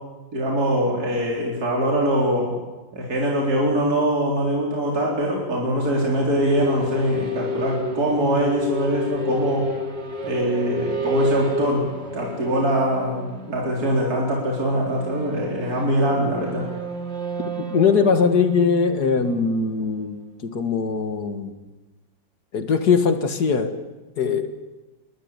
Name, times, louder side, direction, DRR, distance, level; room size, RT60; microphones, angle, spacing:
voice 1, 0.3-2.5 2.9-9.7 10.2-11.9 12.1-16.6, equal, 50° right, -2 dB, 4.6 m, -23 dB
sound 1, 5.4-20.1, left 1 dB, 35° right, 2.4 m, -31 dB
voice 2, 17.7-21.5 22.5-23.7 24.2-24.5, left 5 dB, 55° left, 8 dB, 2.2 m, -21 dB
29.5 x 13.5 x 9.9 m, 1.2 s
omnidirectional pair, 2.1 m